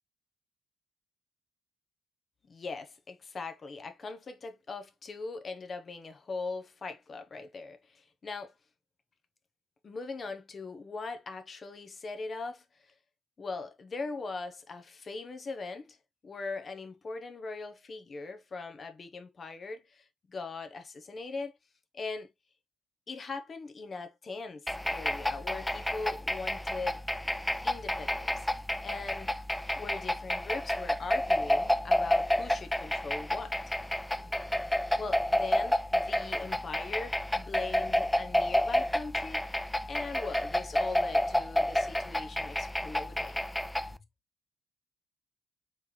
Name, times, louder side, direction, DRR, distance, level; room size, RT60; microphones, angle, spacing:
voice 1, 2.5-8.5 9.8-12.6 13.4-16.0 16.2-21.5 21.9-22.3 23.1-27.0 27.6-28.5 28.8-29.4 29.8-33.6 34.9-43.4, left 3 dB, 40° left, 1.0 m, -40 dB
sound 1, 24.7-44.0, left 1 dB, 5° left, 0.3 m, -30 dB
4.2 x 3.2 x 3.2 m
cardioid pair, 90°, 0 cm